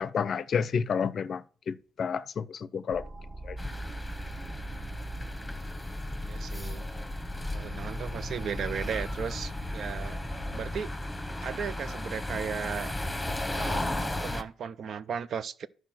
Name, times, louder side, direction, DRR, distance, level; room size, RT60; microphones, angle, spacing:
voice 1, 0.0-3.0 3.4-3.6, left 6 dB, 55° left, 0.5 m, -30 dB
sound 1, 2.9-10.5, equal, 25° right, 1.1 m, -40 dB
sound 2, 3.6-14.4, left 1 dB, 10° left, 1.0 m, -35 dB
voice 2, 6.2-6.8 7.5-10.2 10.5-10.9 11.4-12.9 13.5-15.7, right 7 dB, 60° right, 0.5 m, -36 dB
10.5 x 4.6 x 6.0 m
cardioid pair, 90°, 0 cm